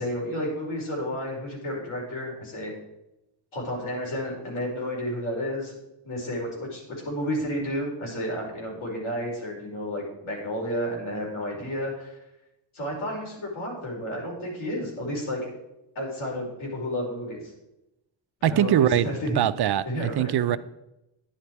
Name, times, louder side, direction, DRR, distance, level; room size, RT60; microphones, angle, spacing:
voice 1, 0.0-2.7 3.5-5.7 6.0-12.2 12.7-15.5 15.9-17.5 18.4-19.4 19.9-20.6, equal, 85° left, 4.8 m, -31 dB
voice 2, 18.4-19.1 19.4-20.6, right 10 dB, 55° right, 0.5 m, -22 dB
10.5 x 10.0 x 4.6 m
wide cardioid pair, 150°, 47 cm